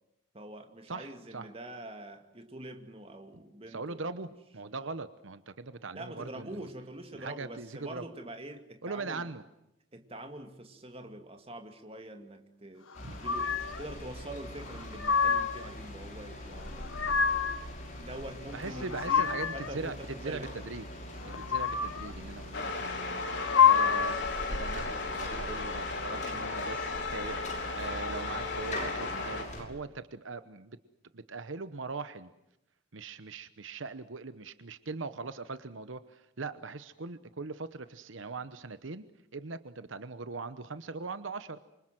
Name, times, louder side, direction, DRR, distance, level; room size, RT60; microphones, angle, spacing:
voice 1, 0.3-4.3 5.9-9.3 9.9-17.0 18.0-20.5, right 1 dB, 30° right, 6 dB, 2.4 m, -45 dB
voice 2, 0.9-1.5 3.7-6.7 7.1-8.0 8.8-9.4 13.0-13.2 18.5-19.9 20.2-20.9 21.2-23.2 23.6-24.2 24.5-27.4 27.8-30.8 31.1-32.3 32.9-39.0 39.3-41.6, right 3 dB, 75° right, 12 dB, 1.0 m, -40 dB
sound 1, 12.9-29.6, left 1 dB, 35° left, 5.9 m, -43 dB
sound 2, 13.2-13.8 14.7-15.7 16.6-17.6 18.6-19.7 21.2-22.1 23.2-24.3, left 7 dB, 85° left, 1.3 m, -27 dB
sound 3, 22.5-29.4, left 3 dB, 60° left, 3.8 m, -35 dB
27.5 x 25.0 x 7.6 m, 0.87 s
head